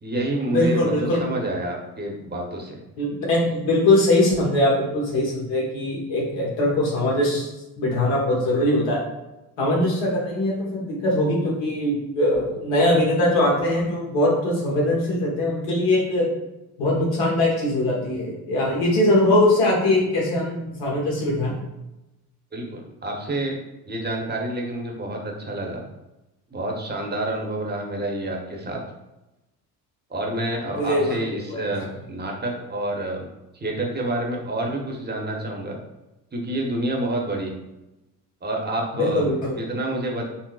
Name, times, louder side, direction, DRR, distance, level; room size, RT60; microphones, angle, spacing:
voice 1, 0.0-2.8 22.5-23.5 23.9-25.8 26.5-28.8 30.1-33.3 33.5-35.8 36.3-37.5 38.4-39.3 39.6-40.3, right 1 dB, 20° right, 0 dB, 0.8 m, -28 dB
voice 2, 0.5-1.2 3.0-7.5 7.8-9.0 9.6-16.3 16.8-21.5 30.6-31.2 31.5-31.7 38.9-39.5, left 1 dB, 75° left, -3 dB, 1.2 m, -21 dB
3.9 x 2.0 x 2.3 m, 0.98 s
hypercardioid pair, 55°, 45 cm